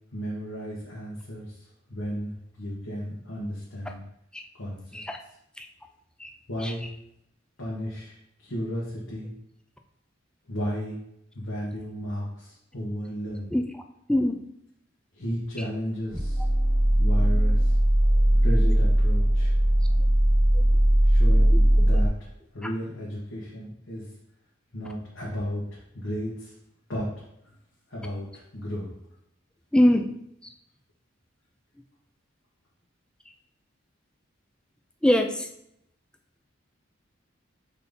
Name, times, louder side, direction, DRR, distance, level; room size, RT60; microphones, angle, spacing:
voice 1, 0.1-1.5 1.9-4.0 4.5-5.0 6.5-6.8 7.6-8.2 8.4-9.3 10.5-11.0 11.3-13.6 15.1-16.4 17.0-17.7 18.4-19.5 21.0-22.1 22.5-24.1 24.7-25.6 25.9-26.5 26.9-27.1 27.4-27.5 27.9-28.3 28.5-28.9, equal, 85° left, -7 dB, 1.6 m, -33 dB
sound 1, 16.1-22.1, right 1 dB, 15° right, 1.0 m, -20 dB
voice 2, 29.7-30.1 30.4-30.5 35.0-35.5, left 1 dB, 5° left, 5 dB, 0.4 m, -23 dB
4.5 x 4.1 x 5.3 m, 0.77 s
head